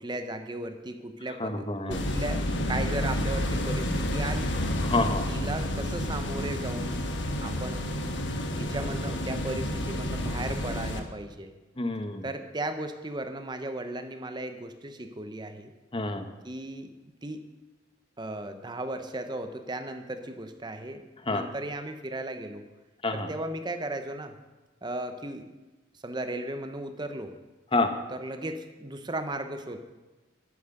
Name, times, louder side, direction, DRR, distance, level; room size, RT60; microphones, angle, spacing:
voice 1, 0.0-4.6 5.3-7.0 7.4-7.9 8.3-11.5 12.2-15.7 16.4-16.9 17.2-17.4 18.2-22.6 23.1-24.4 24.8-25.5 25.9-27.3 28.1-29.8, right 2 dB, 20° right, 8 dB, 0.8 m, -36 dB
voice 2, 1.4-2.0 4.8-5.3 11.8-12.2 15.9-16.3 21.3-21.4 23.0-23.3 27.7-27.9, left 2 dB, 25° left, 8 dB, 0.9 m, -28 dB
sound 1, 1.9-11.0, left 1 dB, 65° left, 1.2 m, -30 dB
9.5 x 9.5 x 6.6 m, 1.1 s
head